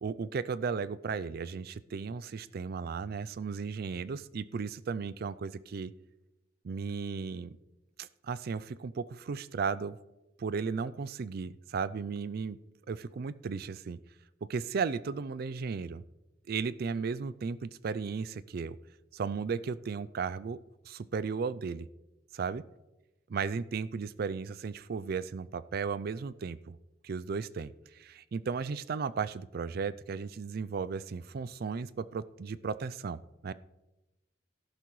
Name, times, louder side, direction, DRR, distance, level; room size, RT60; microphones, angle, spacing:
voice 1, 0.0-5.9 6.6-7.6 8.0-10.0 10.4-12.6 12.9-14.0 14.5-16.0 16.5-18.8 19.1-20.6 20.8-21.9 22.4-22.6 23.3-26.8 27.0-33.5, right 5 dB, 55° right, 17 dB, 0.4 m, -35 dB
13.5 x 11.5 x 3.1 m, 0.99 s
head